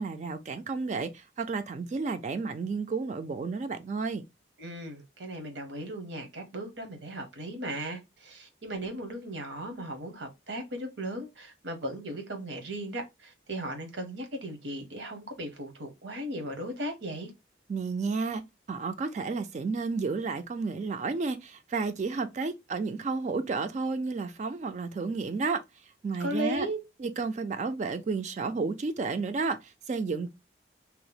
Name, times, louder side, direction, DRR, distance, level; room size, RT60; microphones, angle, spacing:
voice 1, 0.0-4.2 17.7-25.6 26.0-26.7 27.0-30.3, right 4 dB, 40° right, 0.3 m, -32 dB
voice 2, 4.6-17.3 26.2-26.8, right 1 dB, 80° right, 0.9 m, -37 dB
2.8 x 2.0 x 3.9 m
head